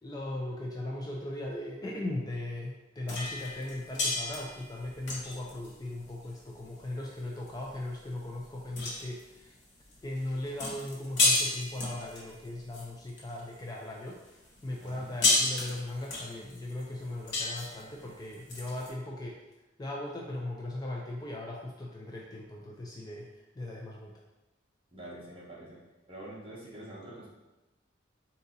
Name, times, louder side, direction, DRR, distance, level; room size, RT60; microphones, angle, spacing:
voice 1, 0.0-9.5 10.0-14.2 14.6-19.4 19.8-24.2, left 1 dB, 20° left, -2 dB, 0.4 m, -38 dB
sound 1, 3.1-13.7 14.1-18.9, left 2 dB, 65° left, 1.1 m, -33 dB
voice 2, 24.9-27.3, right 1 dB, 30° right, -6 dB, 1.2 m, -46 dB
3.9 x 2.8 x 3.9 m, 1.0 s
head